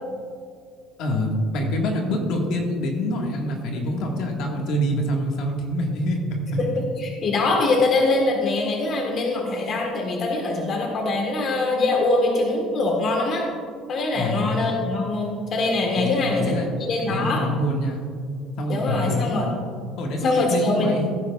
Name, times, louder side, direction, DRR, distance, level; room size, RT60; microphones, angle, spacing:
voice 1, 1.0-6.6 14.1-14.6 16.0-16.7 17.1-18.1 18.6-19.4 20.0-21.1, equal, 65° left, 1 dB, 1.8 m, -25 dB
voice 2, 7.0-13.4 13.9-17.4 18.7-19.5 20.2-20.9, left 2 dB, 45° left, 1 dB, 1.6 m, -23 dB
16.5 x 9.4 x 2.5 m, 2.2 s
cardioid pair, 130°, 0 cm